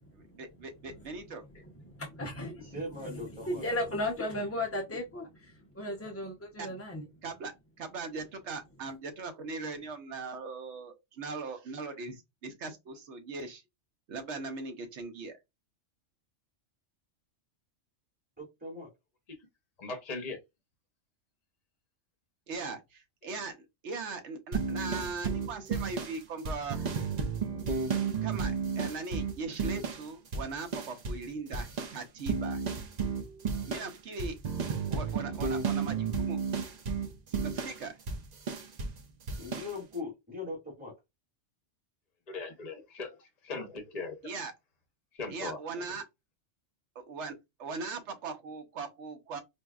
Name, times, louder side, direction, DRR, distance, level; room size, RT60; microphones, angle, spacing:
voice 1, 0.1-1.4 6.6-6.8 7.2-13.6 14.1-15.4 22.5-23.6 23.8-26.9 28.2-32.6 33.7-34.4 34.9-36.4 37.3-38.0 44.2-44.5 45.3-46.0 47.0-49.4, right 4 dB, 70° right, 1.1 m, -40 dB
voice 2, 1.9-2.7 3.4-7.0, left 1 dB, 20° left, 0.4 m, -35 dB
voice 3, 2.6-3.6 18.4-18.9 39.4-40.9, left 2 dB, 5° right, 1.8 m, -40 dB
voice 4, 19.8-20.4 42.3-43.1 43.5-44.2 45.1-45.6, left 3 dB, 40° left, 0.8 m, -38 dB
sound 1, 24.5-30.1 30.3-31.3 31.5-39.0 39.3-39.7, right 5 dB, 50° right, 0.5 m, -33 dB
4.5 x 2.6 x 2.3 m
omnidirectional pair, 1.3 m